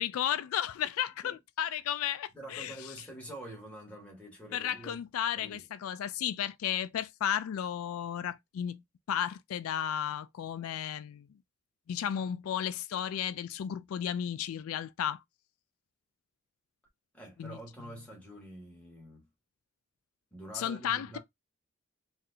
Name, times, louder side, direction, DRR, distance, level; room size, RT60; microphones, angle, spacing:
voice 1, 0.0-2.7 4.5-8.8 9.1-11.3 11.9-15.2 17.4-17.6 20.5-21.2, left 10 dB, 80° left, 0.3 m, -33 dB
voice 2, 2.3-5.0 5.4-5.6 17.1-19.3 20.3-21.2, right 1 dB, 5° left, 1.5 m, -46 dB
4.2 x 2.5 x 2.7 m
head